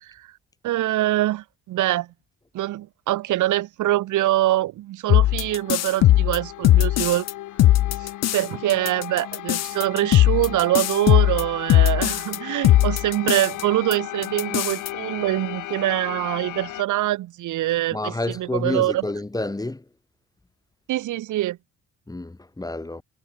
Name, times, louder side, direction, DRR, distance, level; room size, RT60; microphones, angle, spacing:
voice 1, 0.6-2.1 2.5-7.2 8.0-19.0 20.9-21.6, right 15 dB, 80° right, 1.2 m, -24 dB
sound 1, 5.1-7.3 7.6-8.4 8.7-12.4 12.6-13.6 13.9-14.0 14.2-14.9, left 14 dB, 60° left, 0.6 m, -18 dB
sound 2, 5.2-16.8, left 15 dB, 85° left, 2.1 m, -36 dB
voice 2, 17.9-19.8 22.1-23.0, left 2 dB, 10° left, 1.7 m, -29 dB
cardioid pair, 90°, 30 cm